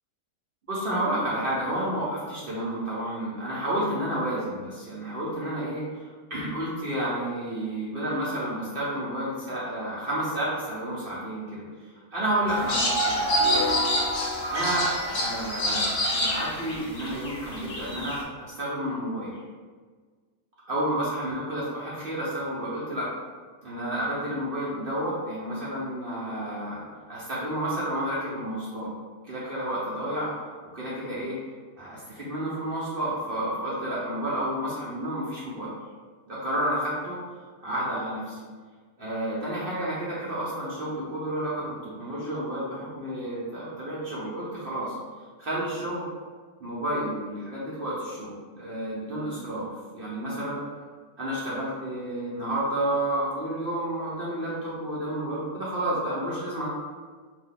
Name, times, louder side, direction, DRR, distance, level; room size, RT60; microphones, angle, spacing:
voice 1, 0.7-6.0 6.3-13.8 14.5-19.3 20.7-23.1 23.6-28.9 29.2-30.3 30.7-31.3 31.8-35.7 36.3-37.2 37.6-38.4 39.0-45.0 45.4-46.1 46.6-48.3 48.5-49.7 49.9-50.6 51.2-56.7, right 1 dB, 60° right, -7 dB, 0.5 m, -30 dB
sound 1, 12.2-16.2, right 2 dB, 25° left, 0.4 m, -30 dB
sound 2, 12.5-18.2, left 1 dB, 65° left, 0.6 m, -28 dB
2.8 x 2.7 x 3.6 m, 1.5 s
omnidirectional pair, 1.8 m